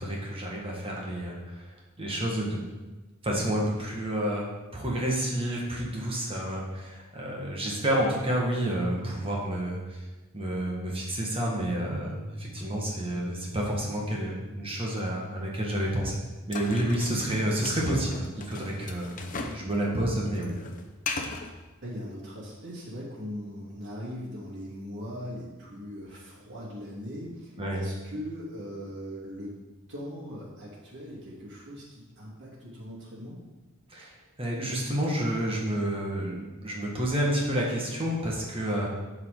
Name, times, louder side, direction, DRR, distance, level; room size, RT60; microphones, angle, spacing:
voice 1, 0.0-1.7 2.0-2.6 3.2-4.5 4.7-10.0 10.3-16.2 16.5-19.1 19.5-20.5 27.6-27.8 33.9-38.9, right 1 dB, 25° right, -2 dB, 1.6 m, -29 dB
sound 1, 16.5-19.7 19.9-21.5, left 3 dB, 40° left, 0.8 m, -37 dB
voice 2, 21.8-29.6 29.9-33.4, equal, 60° right, -6 dB, 3.2 m, -40 dB
12.0 x 5.0 x 3.9 m, 1.1 s
head